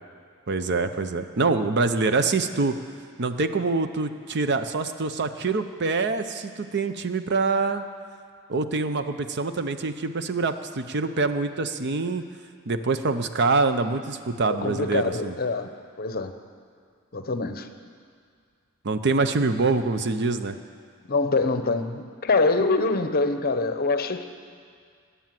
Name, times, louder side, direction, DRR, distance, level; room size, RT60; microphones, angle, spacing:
voice 1, 0.5-2.8 3.2-7.8 8.5-12.2 12.7-15.3 18.8-20.6, right 3 dB, 55° right, 10 dB, 0.7 m, -25 dB
voice 2, 14.5-15.7 16.0-16.3 17.1-17.7 21.1-24.3, left 3 dB, 45° left, 9 dB, 0.8 m, -24 dB
20.0 x 8.5 x 7.6 m, 2.1 s
head